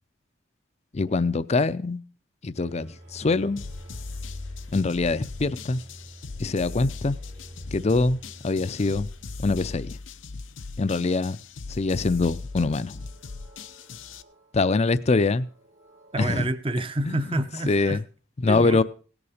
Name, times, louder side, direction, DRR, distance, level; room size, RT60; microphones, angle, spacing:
voice 1, 0.9-2.0 2.4-3.6 4.7-5.8 6.4-7.2 7.7-9.1 9.4-10.0 10.8-11.4 11.7-12.9 14.5-15.5 16.2-16.5 17.1-17.2 17.7-18.0 18.4-18.8, left 3 dB, 35° left, 0.5 m, -24 dB
sound 1, 2.6-10.2 12.0-16.5, equal, 80° right, 2.4 m, -48 dB
sound 2, 3.6-14.2, left 3 dB, 85° left, 0.7 m, -39 dB
voice 2, 16.1-18.0 18.5-18.8, right 1 dB, 30° right, 0.7 m, -28 dB
17.5 x 7.0 x 5.0 m
head